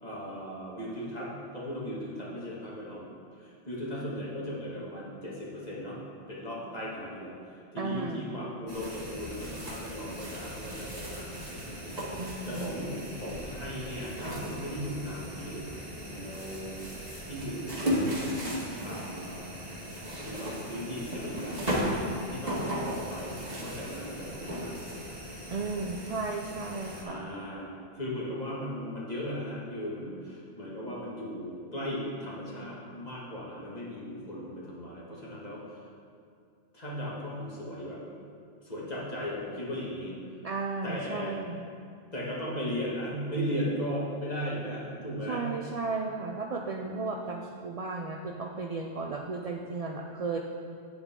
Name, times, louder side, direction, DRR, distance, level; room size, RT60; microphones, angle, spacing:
voice 1, 0.0-3.0 3.4-7.4 7.7-12.0 12.5-15.6 16.0-16.8 17.3-19.5 20.1-21.7 22.3-24.9 27.0-35.8 36.7-38.0 38.6-40.1 40.8-41.4 42.1-45.5, equal, 35° left, -6 dB, 2.0 m, -37 dB
voice 2, 7.8-8.4 12.2-12.8 25.5-27.3 40.4-41.7 45.3-50.4, right 3 dB, 55° right, 2 dB, 0.4 m, -34 dB
sound 1, 8.7-27.0, equal, 35° right, 1.7 m, -36 dB
9.1 x 8.0 x 3.7 m, 2.3 s
omnidirectional pair, 1.2 m